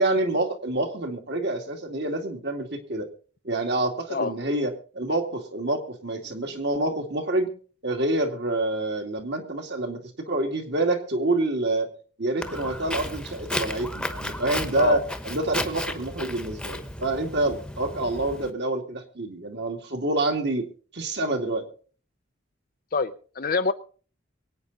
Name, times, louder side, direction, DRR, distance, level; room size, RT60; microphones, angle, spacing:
voice 1, 0.0-3.1 3.4-7.5 7.8-10.0 10.3-11.9 12.2-20.7 20.9-21.6, right 2 dB, 55° right, 4 dB, 2.5 m, -27 dB
Walk footsteps, 12.4-18.5, left 1 dB, 5° left, 1.1 m, -34 dB
voice 2, 22.9-23.7, left 4 dB, 45° left, 9 dB, 0.6 m, -25 dB
23.0 x 9.3 x 4.1 m, 0.42 s
head